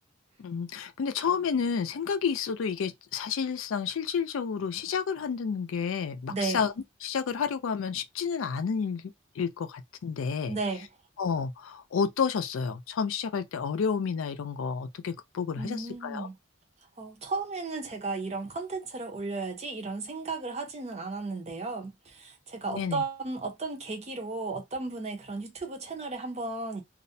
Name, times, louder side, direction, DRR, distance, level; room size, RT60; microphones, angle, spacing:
voice 1, 0.4-6.7 7.0-9.1 9.4-10.6 11.2-16.3 22.7-23.0, left 6 dB, 85° left, 0.4 m, -30 dB
voice 2, 6.3-6.6 10.5-10.9 15.6-16.3 17.0-26.8, right 3 dB, 30° right, 0.5 m, -34 dB
2.3 x 2.1 x 2.6 m
head